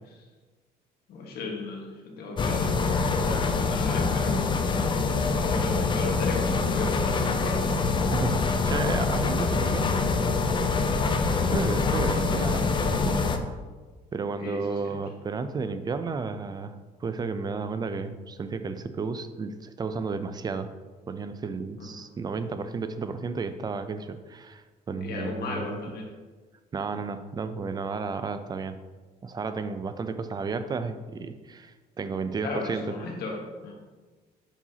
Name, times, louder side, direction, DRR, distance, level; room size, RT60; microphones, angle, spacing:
voice 1, 1.1-4.9 5.4-7.6 14.4-15.0 21.8-22.1 25.0-26.1 32.4-33.7, left 3 dB, 70° left, 0 dB, 1.5 m, -35 dB
sound 1, 2.4-13.4, left 4 dB, 30° left, 0.5 m, -25 dB
voice 2, 8.1-10.2 11.5-13.6 14.1-20.7 21.1-25.8 26.7-28.8 29.2-32.9, right 4 dB, 25° right, 10 dB, 0.4 m, -32 dB
7.2 x 5.5 x 2.8 m, 1.3 s
cardioid pair, 110°, 17 cm